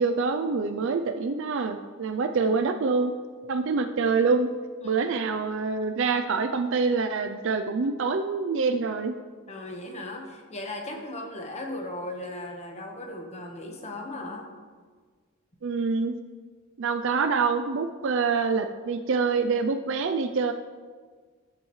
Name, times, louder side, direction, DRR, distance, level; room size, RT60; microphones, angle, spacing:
voice 1, 0.0-3.1 3.5-4.5 4.8-9.1 15.6-16.1 16.8-20.5, right 4 dB, 60° right, 8 dB, 0.4 m, -26 dB
voice 2, 9.5-14.5, left 1 dB, 30° left, 2 dB, 1.2 m, -37 dB
13.0 x 7.4 x 3.2 m, 1.5 s
head